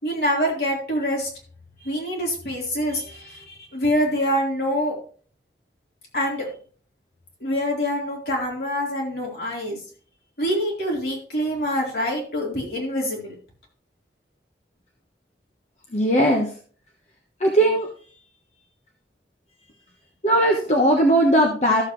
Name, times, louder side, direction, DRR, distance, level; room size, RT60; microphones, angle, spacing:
voice 1, 0.0-1.3 1.8-5.0 6.1-6.5 7.4-9.8 10.4-13.3, equal, 65° left, -2 dB, 4.0 m, -25 dB
voice 2, 15.9-16.5 17.4-17.9 20.2-21.8, right 1 dB, 40° left, 1 dB, 1.2 m, -18 dB
13.5 x 7.5 x 3.2 m, 0.43 s
head